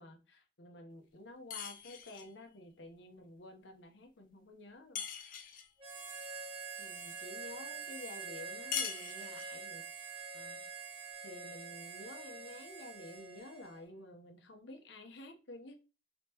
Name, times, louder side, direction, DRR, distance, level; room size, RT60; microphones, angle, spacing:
voice 1, 0.0-5.0 6.8-10.1 10.3-10.6 11.2-15.7, left 1 dB, 85° left, 0.9 m, -51 dB
sound 1, 1.5-2.3 5.0-5.7 8.7-9.6, left 8 dB, 50° left, 0.4 m, -41 dB
Harmonica, 5.8-13.8, right 5 dB, 30° right, 1.3 m, -46 dB
4.0 x 3.7 x 2.9 m
head